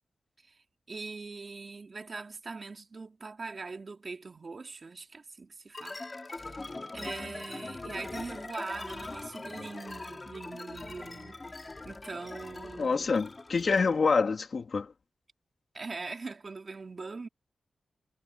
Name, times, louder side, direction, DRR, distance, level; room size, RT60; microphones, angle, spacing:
voice 1, 0.9-6.0 6.3-6.6 6.9-11.4 11.8-13.1 15.7-17.3, right 4 dB, 40° right, 2.8 m, -42 dB
sound 1, 5.7-14.0, left 2 dB, 30° left, 2.8 m, -42 dB
voice 2, 12.8-14.9, left 4 dB, 50° left, 3.0 m, -26 dB
wide cardioid pair, 110°, 0 cm